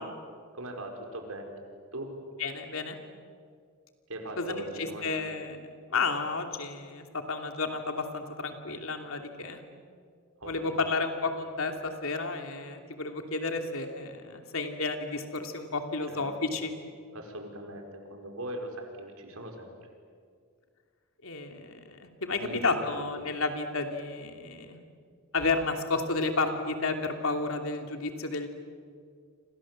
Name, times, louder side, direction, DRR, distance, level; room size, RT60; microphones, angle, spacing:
voice 1, 0.5-1.6 1.9-2.1 4.1-5.4 10.4-10.9 16.1-16.5 17.1-19.7 22.3-22.9 23.2-23.3, right 1 dB, 75° right, 3 dB, 5.0 m, -40 dB
voice 2, 2.4-3.0 4.4-9.6 10.4-16.7 21.2-24.8 25.3-28.5, left 3 dB, 70° left, 5 dB, 2.9 m, -32 dB
30.0 x 26.0 x 7.7 m, 2.1 s
head